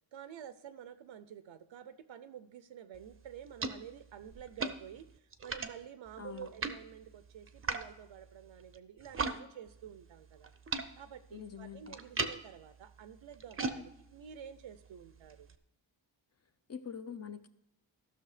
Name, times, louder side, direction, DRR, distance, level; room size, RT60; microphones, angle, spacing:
voice 1, 0.1-10.5 11.0-15.5, right 9 dB, 85° right, 12 dB, 0.7 m, -50 dB
sound 1, 2.9-9.4 9.7-15.6, right 4 dB, 30° right, 0.6 m, -41 dB
voice 2, 6.2-6.5 11.3-12.0 16.7-17.5, left 7 dB, 35° left, 11 dB, 0.6 m, -44 dB
14.5 x 6.3 x 4.9 m, 0.81 s
wide cardioid pair, 170°, 45 cm